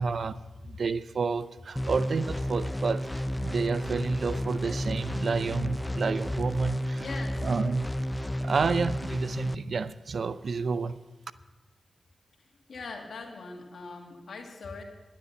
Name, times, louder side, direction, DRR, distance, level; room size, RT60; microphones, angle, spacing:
voice 1, 0.0-7.0 7.4-7.9 8.4-11.0, right 4 dB, 65° right, 0.5 m, -30 dB
sound 1, 1.8-9.5, equal, 10° left, 0.5 m, -32 dB
voice 2, 7.0-7.5 12.7-14.8, left 3 dB, 75° left, 2.1 m, -41 dB
11.0 x 10.5 x 7.0 m
cardioid pair, 45°, 0 cm